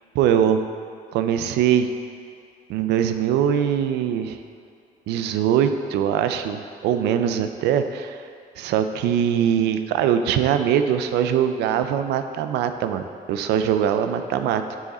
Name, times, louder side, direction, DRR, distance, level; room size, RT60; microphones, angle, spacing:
voice 1, 0.1-0.6 1.1-1.9 2.7-4.4 5.1-8.2 8.6-13.0 13.3-14.6, right 9 dB, 80° right, 8 dB, 0.5 m, -22 dB
9.4 x 4.8 x 4.2 m, 2.4 s
cardioid pair, 110°, 17 cm